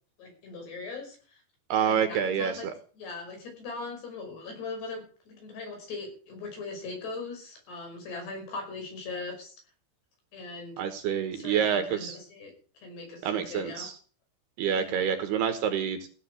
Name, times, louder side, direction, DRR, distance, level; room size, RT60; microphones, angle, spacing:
voice 1, 0.2-1.4 1.8-2.7 3.0-9.5 10.3-10.9 11.3-12.5 12.8-13.9 14.7-15.0, left 3 dB, 60° left, 3 dB, 7.5 m, -40 dB
voice 2, 1.7-2.7 10.8-12.2 13.2-14.0 14.6-16.1, right 8 dB, 70° right, 8 dB, 2.9 m, -27 dB
16.0 x 8.1 x 8.1 m, 0.41 s
omnidirectional pair, 5.4 m